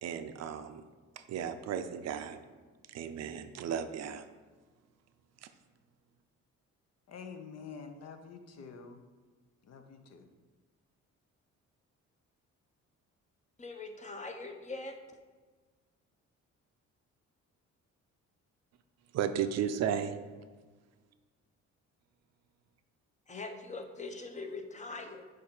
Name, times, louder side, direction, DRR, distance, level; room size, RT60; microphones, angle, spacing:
voice 1, 0.0-0.8 1.2-2.4 2.9-4.3 5.4-5.5 19.1-20.4, right 8 dB, 60° right, 10 dB, 0.5 m, -35 dB
voice 2, 7.1-9.0 9.6-10.3, left 5 dB, 60° left, 6 dB, 0.7 m, -47 dB
voice 3, 13.6-15.0 23.3-25.2, left 3 dB, 25° left, 5 dB, 0.7 m, -42 dB
6.5 x 2.6 x 5.5 m, 1.4 s
cardioid pair, 90°, 30 cm